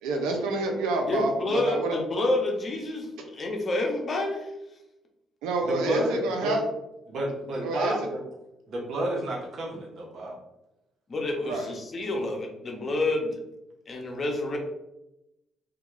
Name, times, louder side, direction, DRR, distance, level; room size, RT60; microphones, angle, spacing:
voice 1, 0.0-2.0 5.4-6.6 7.6-8.0 11.4-11.7, right 2 dB, 85° right, 2 dB, 0.4 m, -28 dB
voice 2, 1.1-4.5 11.1-13.4 13.9-14.6, left 2 dB, 45° left, 1 dB, 0.7 m, -28 dB
voice 3, 5.7-6.6 7.1-8.2 8.7-10.4, right 1 dB, 65° right, -1 dB, 0.7 m, -30 dB
2.3 x 2.1 x 3.0 m, 0.91 s
supercardioid pair, 65°, 0 cm